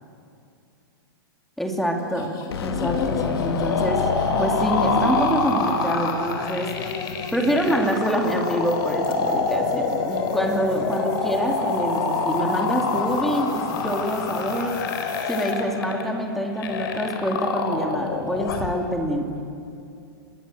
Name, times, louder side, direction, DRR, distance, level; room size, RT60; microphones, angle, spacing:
voice 1, 1.6-4.0 4.4-6.7 7.3-14.8 15.3-19.4, equal, ahead, 3 dB, 2.6 m, -26 dB
sound 1, 2.0-15.5, left 6 dB, 30° left, 2.8 m, -36 dB
sound 2, 2.5-5.8, left 7 dB, 85° left, 1.5 m, -30 dB
sound 3, 2.8-18.7, left 4 dB, 60° left, 4.0 m, -26 dB
28.5 x 20.5 x 7.9 m, 2.5 s
hypercardioid pair, 140°, 13 cm